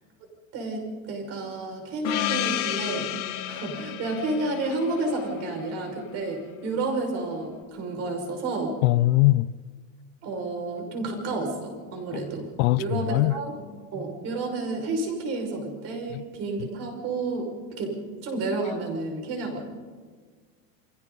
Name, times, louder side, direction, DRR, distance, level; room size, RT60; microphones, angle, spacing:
voice 1, 0.5-3.1 3.5-8.8 10.2-13.6 13.9-17.5 17.8-17.9 18.2-19.6, right 2 dB, 35° right, 5.9 m, -30 dB
Gong, 2.0-6.4, left 13 dB, 55° left, 1.9 m, -32 dB
voice 2, 8.8-9.5 12.6-13.4 16.1-16.2, left 18 dB, 80° left, 0.6 m, -21 dB
30.0 x 22.5 x 4.1 m
supercardioid pair, 170°, 41 cm